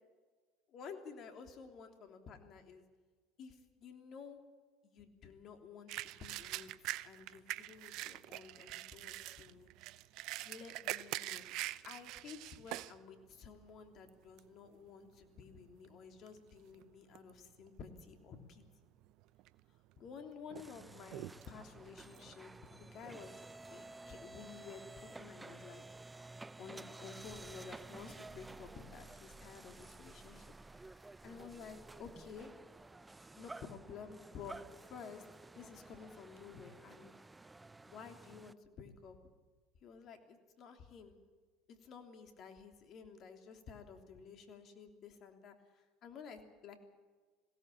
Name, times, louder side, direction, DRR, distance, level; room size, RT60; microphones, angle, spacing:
voice 1, 0.7-2.8 3.4-4.4 4.8-6.7 7.0-9.7 10.4-11.4 11.8-18.6 20.0-25.8 26.6-30.4 30.7-32.5 33.4-35.2 35.5-37.1 37.8-39.2 39.8-41.2 41.7-46.8, left 6 dB, 50° left, 6 dB, 3.1 m, -52 dB
sound 1, 5.9-13.0 13.5-13.6 14.1-14.5 15.2-15.4 15.7-16.8 17.1-17.7 18.1-18.2 19.0-19.6 20.0-23.1, right 17 dB, 65° right, 0.7 m, -44 dB
sound 2, 20.6-38.5, right 2 dB, 15° right, 0.6 m, -53 dB
21.0 x 17.0 x 8.6 m, 1.4 s
hypercardioid pair, 75°, 0 cm